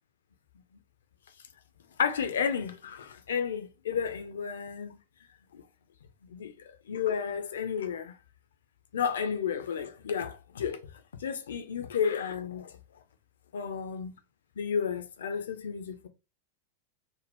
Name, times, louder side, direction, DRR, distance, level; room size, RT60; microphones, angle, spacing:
voice 1, 2.0-5.0 5.5-5.6 6.3-6.5 6.9-8.1 8.9-10.8 11.2-12.7 13.5-14.1 14.6-16.1, left 7 dB, 65° left, 0.4 m, -32 dB
2.6 x 2.1 x 3.4 m
figure-of-eight pair, 90°, 0 cm